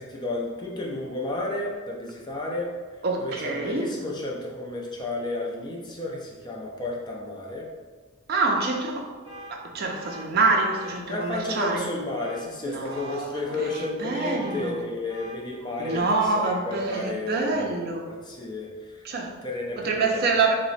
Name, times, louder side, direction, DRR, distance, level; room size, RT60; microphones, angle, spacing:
voice 1, 0.0-2.7 3.2-7.7 11.1-16.1 16.3-17.6 18.0-19.0 19.4-20.4, left 2 dB, 20° left, -2 dB, 0.4 m, -32 dB
voice 2, 3.0-3.9 8.3-9.1 9.5-11.9 12.6-13.7 14.0-14.8 15.8-18.1 19.0-19.3 19.8-20.5, right 3 dB, 45° right, 1 dB, 0.4 m, -26 dB
sound 1, 8.5-8.8 9.2-9.5 10.0-10.2 10.7-11.0 11.4-11.7 12.2-12.4 12.9-13.2 13.6-13.9 14.4-14.6 15.1-15.4 15.8-16.1, equal, 25° right, 1.2 m, -42 dB
2.8 x 2.1 x 4.0 m, 1.4 s
head